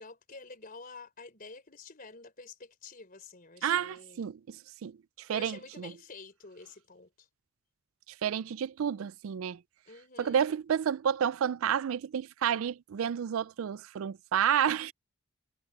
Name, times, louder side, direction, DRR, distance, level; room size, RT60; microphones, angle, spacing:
voice 1, 0.0-4.3 5.3-7.3 9.9-10.5, left 4 dB, 40° left, 4.1 m, -49 dB
voice 2, 3.6-5.9 8.2-9.6 10.2-14.9, right 8 dB, 75° right, 0.4 m, -30 dB
head